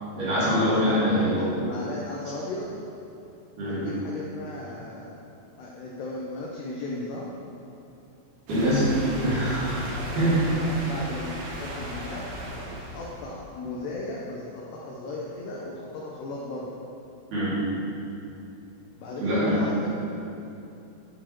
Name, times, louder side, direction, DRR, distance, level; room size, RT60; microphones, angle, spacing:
voice 1, 0.1-1.4 3.6-3.9 8.5-9.9 10.1-10.5 17.3-17.6 19.2-19.6, equal, 45° right, -10 dB, 3.6 m, -24 dB
voice 2, 0.8-2.7 3.6-5.2 5.6-7.3 9.9-12.3 12.7-16.8 19.0-19.9, left 2 dB, 80° left, -3 dB, 2.5 m, -36 dB
sound 1, 8.5-13.4, equal, 60° right, 2.7 m, -36 dB
12.5 x 6.7 x 4.5 m, 2.8 s
omnidirectional pair, 5.9 m